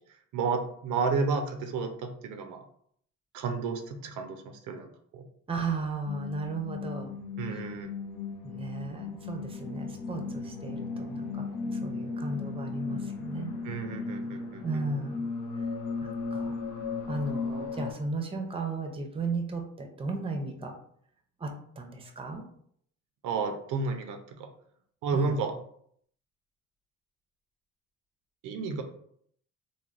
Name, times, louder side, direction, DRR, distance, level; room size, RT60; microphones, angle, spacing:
voice 1, 0.3-2.6 3.3-5.3 7.4-7.9 13.6-14.8 23.2-24.5 25.0-25.6 28.4-28.8, right 4 dB, 85° right, 5 dB, 0.5 m, -32 dB
voice 2, 5.5-7.1 8.4-13.5 14.6-15.2 16.0-16.5 17.1-20.7 21.4-22.4 25.1-25.4, right 3 dB, 20° right, 4 dB, 0.5 m, -35 dB
sound 1, 6.1-17.9, left 4 dB, 75° left, 0.6 m, -36 dB
3.2 x 2.1 x 2.4 m, 0.66 s
cardioid pair, 90°, 30 cm